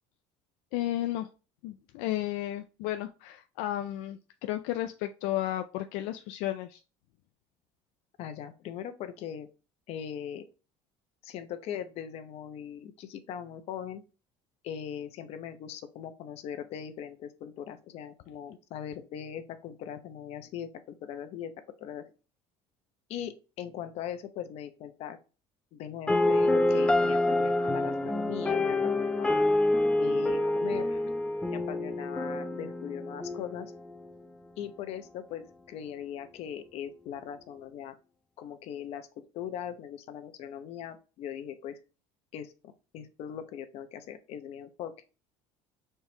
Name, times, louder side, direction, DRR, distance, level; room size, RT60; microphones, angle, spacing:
voice 1, 0.7-1.3 1.6-6.8, left 14 dB, 85° left, 7 dB, 0.4 m, -33 dB
voice 2, 8.2-9.5 9.9-10.4 11.2-14.0 14.6-21.5 21.8-22.1 23.1-25.2 25.7-29.5 30.0-31.0 31.5-33.7 34.6-37.9 38.4-41.8 42.3-44.9, left 9 dB, 60° left, 9 dB, 0.8 m, -40 dB
sound 1, 26.1-34.1, left 2 dB, 5° left, 0.4 m, -27 dB
4.5 x 3.4 x 2.8 m, 0.32 s
cardioid pair, 130°, 12 cm